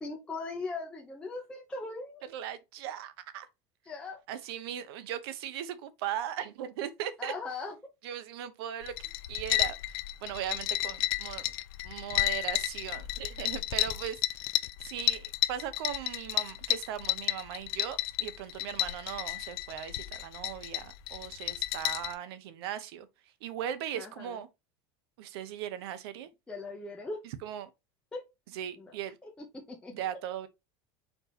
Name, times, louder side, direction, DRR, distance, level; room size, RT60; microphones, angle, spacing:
voice 1, 0.0-2.2 3.9-4.2 7.2-7.8 24.0-24.4 26.5-27.2 28.1-28.2 28.8-28.9 29.2-29.9, left 3 dB, 5° left, 0.6 m, -39 dB
voice 2, 2.3-3.5 4.3-7.3 8.0-8.9 9.3-11.5 11.8-14.4 14.8-23.1 23.4-24.5 25.2-26.3 27.4-27.7 28.5-29.2 29.9-30.5, right 10 dB, 90° right, 0.8 m, -38 dB
sound 1, 8.8-22.1, left 16 dB, 75° left, 0.4 m, -32 dB
4.5 x 2.8 x 4.0 m
cardioid pair, 175°, 13 cm